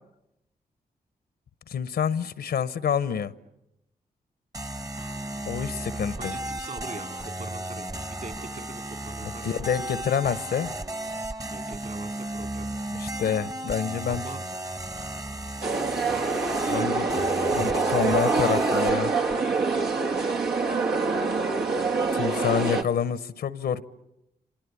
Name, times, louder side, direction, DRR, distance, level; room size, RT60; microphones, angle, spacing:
voice 1, 1.7-3.3 5.5-6.4 9.2-10.7 13.0-14.2 16.6-17.1 17.5-19.1 22.1-23.8, left 7 dB, 80° left, 0.9 m, -27 dB
sound 1, 4.5-19.4, right 1 dB, 20° right, 1.0 m, -34 dB
voice 2, 6.2-9.6 11.5-12.7 14.1-14.4 15.9-16.3 16.7-16.9, right 3 dB, 55° right, 4.2 m, -42 dB
sound 2, 15.6-22.8, right 3 dB, 85° right, 1.6 m, -25 dB
28.0 x 25.0 x 8.4 m
supercardioid pair, 45°, 16 cm